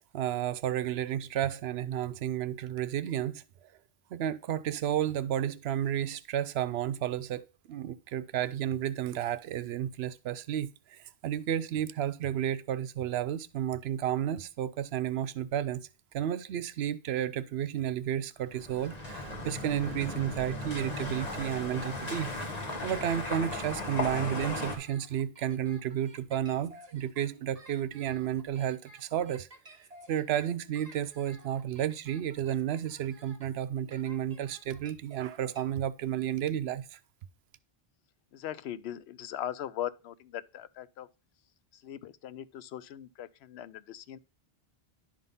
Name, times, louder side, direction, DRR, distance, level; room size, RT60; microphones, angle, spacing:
voice 1, 0.0-3.7 4.1-15.9 16.1-22.3 22.8-29.5 29.8-37.0, right 10 dB, 80° right, 0.8 m, -32 dB
sound 1, 18.5-24.8, left 2 dB, 40° left, 1.6 m, -36 dB
sound 2, 22.9-35.6, right 2 dB, 40° right, 1.2 m, -54 dB
voice 2, 38.3-41.1 41.7-44.2, left 11 dB, 85° left, 0.8 m, -40 dB
10.5 x 3.8 x 5.4 m
omnidirectional pair, 1.0 m